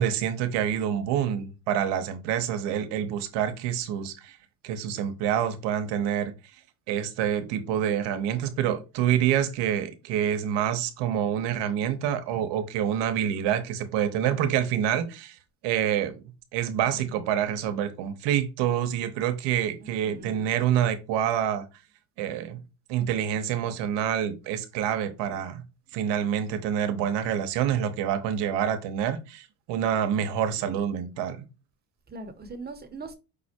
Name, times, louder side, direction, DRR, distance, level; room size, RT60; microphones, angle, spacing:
voice 1, 0.0-4.4 4.6-6.3 6.9-15.4 15.6-16.2 16.5-21.7 22.2-22.6 22.9-25.6 25.9-31.4, right 9 dB, 70° right, 0.9 m, -27 dB
voice 2, 19.8-20.5 32.1-33.1, right 3 dB, 20° right, 1.0 m, -41 dB
5.3 x 2.1 x 4.3 m
supercardioid pair, 80°, 44 cm